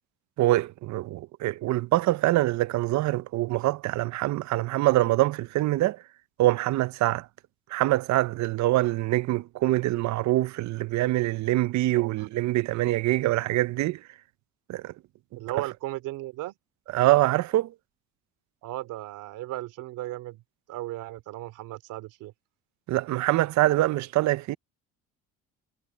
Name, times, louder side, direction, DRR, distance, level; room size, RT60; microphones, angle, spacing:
voice 1, 0.4-6.0 6.4-7.3 7.7-14.0 14.7-14.9 16.9-17.7 22.9-24.6, right 16 dB, 65° right, 0.6 m, -24 dB
voice 2, 12.0-12.3 15.3-16.5 18.6-20.4 20.7-22.3, right 16 dB, 80° right, 2.7 m, -36 dB
cardioid pair, 95°, 31 cm